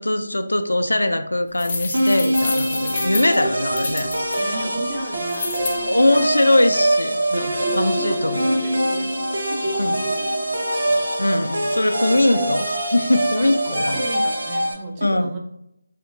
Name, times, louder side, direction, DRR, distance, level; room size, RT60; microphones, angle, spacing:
voice 1, 0.0-4.1 5.9-8.5 9.8-10.0 11.2-12.6 12.9-14.0 15.0-15.3, left 1 dB, 80° left, 8 dB, 0.3 m, -21 dB
sound 1, 1.6-4.4 5.3-5.7, left 3 dB, 35° left, 0.5 m, -29 dB
sound 2, 1.9-14.7, right 1 dB, 60° right, 0.8 m, -23 dB
voice 2, 4.4-6.5 7.6-11.0 12.1-12.5 13.3-15.4, right 2 dB, 20° right, 1 dB, 0.4 m, -34 dB
2.8 x 2.5 x 2.5 m, 0.78 s
figure-of-eight pair, 160°, 0 cm